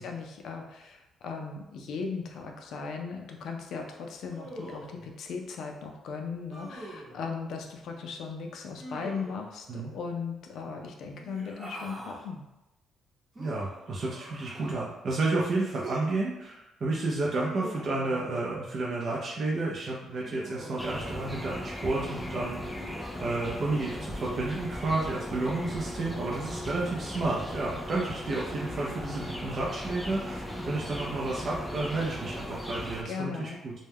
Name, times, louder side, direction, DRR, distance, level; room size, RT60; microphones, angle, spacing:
voice 1, 0.0-12.5 33.0-33.6, left 5 dB, 75° left, 3 dB, 0.4 m, -37 dB
Human voice, 4.3-5.1 6.5-7.2 8.8-9.5 11.1-12.2 13.3-14.8 15.6-16.1 17.3-18.8 20.2-21.4 22.4-23.3, right 1 dB, 30° right, 0.8 m, -43 dB
voice 2, 13.4-22.6 23.2-33.7, right 2 dB, 55° right, -4 dB, 0.5 m, -31 dB
sound 1, 20.8-33.0, left 1 dB, ahead, 0.4 m, -37 dB
2.2 x 2.1 x 3.3 m, 0.97 s
cardioid pair, 90°, 0 cm